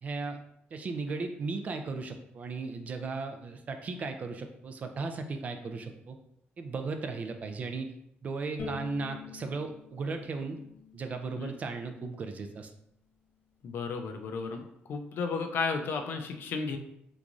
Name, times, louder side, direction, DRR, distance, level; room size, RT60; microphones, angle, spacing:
voice 1, 0.0-0.4 0.7-6.2 6.6-7.9 8.2-10.6 10.9-12.7, right 4 dB, 35° right, 6 dB, 0.3 m, -36 dB
Bowed string instrument, 8.6-11.8, left 4 dB, 85° left, 1.2 m, -45 dB
voice 2, 13.6-16.8, left 4 dB, 60° left, 5 dB, 0.4 m, -33 dB
3.5 x 3.0 x 2.5 m, 0.75 s
cardioid pair, 160°, 4 cm